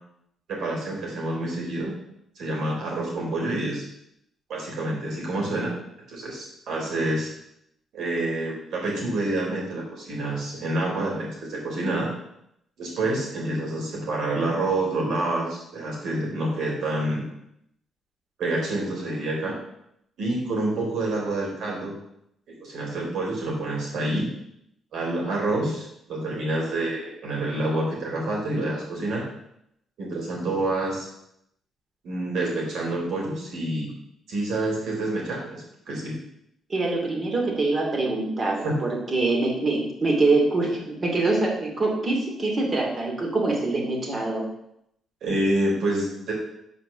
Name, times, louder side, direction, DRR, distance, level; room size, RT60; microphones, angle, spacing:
voice 1, 0.5-1.9 2.4-3.8 4.5-5.7 6.1-7.3 7.9-12.1 12.8-17.2 18.4-19.5 20.2-21.9 22.5-24.3 24.9-29.2 30.0-31.1 32.0-33.9 34.3-36.1 38.6-38.8 45.2-46.3, right 2 dB, 75° right, -2 dB, 3.7 m, -27 dB
voice 2, 36.7-44.5, right 2 dB, 40° right, 0 dB, 2.6 m, -24 dB
6.6 x 5.1 x 6.8 m, 0.77 s
cardioid pair, 90°, 0 cm